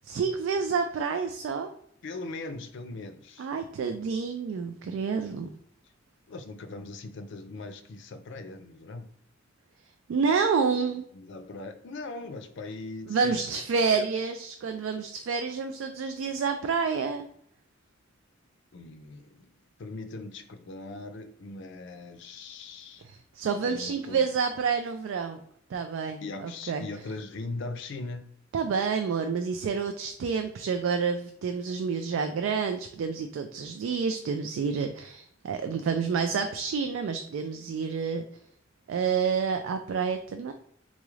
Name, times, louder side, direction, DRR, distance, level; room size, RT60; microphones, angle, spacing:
voice 1, 0.1-1.7 3.4-5.5 10.1-11.1 13.1-17.3 23.0-25.4 25.7-26.8 28.5-38.2 38.9-40.5, right 5 dB, 75° right, 0.3 m, -29 dB
voice 2, 2.0-3.5 6.3-9.1 11.1-13.5 13.8-14.1 18.7-19.5 19.8-23.0 23.6-24.3 26.2-28.3, left 3 dB, 65° left, 0.4 m, -40 dB
3.9 x 2.4 x 3.1 m
head